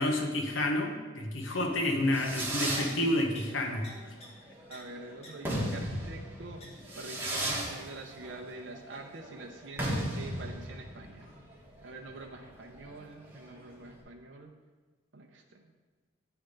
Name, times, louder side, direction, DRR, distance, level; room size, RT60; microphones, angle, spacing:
voice 1, 0.0-3.9, left 1 dB, 80° left, 3 dB, 1.0 m, -29 dB
Fireworks, 1.8-14.0, right 1 dB, 10° right, 1.1 m, -37 dB
sound 1, 2.4-2.5 2.9-3.0 3.3-3.4 3.8-3.9 4.2-4.3 4.7-4.8 5.2-5.3 6.6-6.7 7.2-7.3, left 3 dB, 35° left, 1.4 m, -48 dB
voice 2, 4.7-6.6 6.9-11.3 11.8-14.5 15.1-15.7, right 2 dB, 70° right, 1 dB, 0.7 m, -45 dB
8.7 x 3.4 x 5.2 m, 1.3 s
head